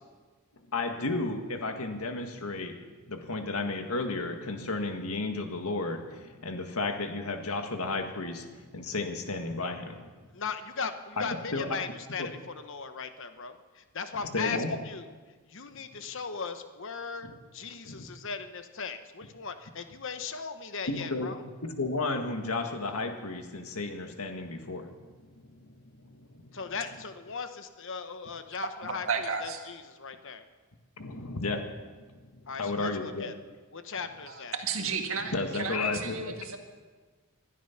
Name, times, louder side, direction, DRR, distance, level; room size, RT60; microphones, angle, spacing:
voice 1, 0.7-10.1 11.2-11.8 12.2-12.3 14.3-14.8 15.7-16.0 17.2-17.3 17.8-18.1 20.9-21.3 21.6-24.9 25.2-26.3 31.0-33.3 35.3-36.3, left 3 dB, 75° left, 5 dB, 1.7 m, -33 dB
voice 2, 10.3-15.0 15.5-21.4 26.5-29.1 29.4-30.4 32.5-33.3 33.7-34.5, left 5 dB, 55° left, 9 dB, 1.1 m, -38 dB
voice 3, 28.8-29.6 34.3-36.6, right 5 dB, 60° right, 4 dB, 1.8 m, -33 dB
20.5 x 12.0 x 5.8 m, 1.4 s
head